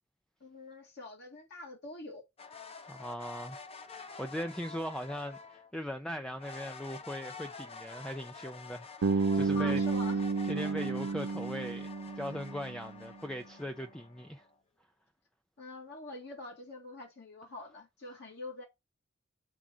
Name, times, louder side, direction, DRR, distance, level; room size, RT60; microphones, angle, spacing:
voice 1, 0.4-2.2 9.5-10.2 15.6-18.6, left 2 dB, 55° left, 1.8 m, -45 dB
sound 1, 2.4-5.7 6.4-14.5, left 4 dB, 30° left, 0.8 m, -48 dB
voice 2, 2.9-3.6 3.9-9.8 10.4-11.9 12.2-14.5, equal, 5° left, 0.4 m, -39 dB
Bass guitar, 9.0-13.0, right 4 dB, 85° right, 0.5 m, -31 dB
7.4 x 3.5 x 4.9 m
head